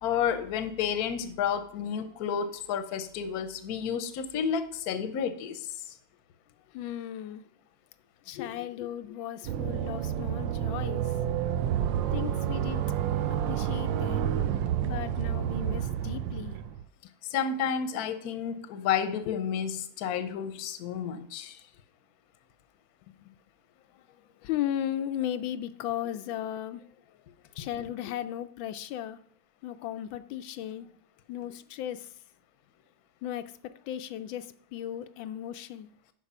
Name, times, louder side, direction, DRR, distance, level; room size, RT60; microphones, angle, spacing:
voice 1, 0.0-6.0 8.3-8.7 17.2-21.6, left 7 dB, 60° left, 1.1 m, -31 dB
voice 2, 6.7-7.4 8.2-11.2 12.1-12.9 13.3-14.3 14.8-16.6 23.2-23.3 23.9-27.0 27.5-29.2 29.6-30.9 31.3-32.1 33.2-35.9, left 11 dB, 85° left, 1.4 m, -36 dB
sound 1, 9.4-16.8, right 10 dB, 80° right, 1.3 m, -29 dB
11.0 x 4.7 x 5.5 m
omnidirectional pair, 2.1 m